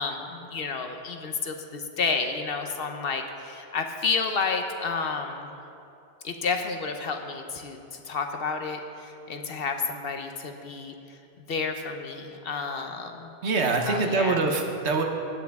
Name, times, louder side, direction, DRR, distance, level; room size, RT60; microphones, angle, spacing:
voice 1, 0.0-5.5 6.2-11.2 11.5-13.4 13.9-14.4, left 4 dB, 60° left, 5 dB, 0.9 m, -31 dB
voice 2, 13.4-15.0, right 3 dB, 85° right, 3 dB, 1.3 m, -24 dB
16.0 x 9.3 x 3.5 m, 2.7 s
omnidirectional pair, 1.1 m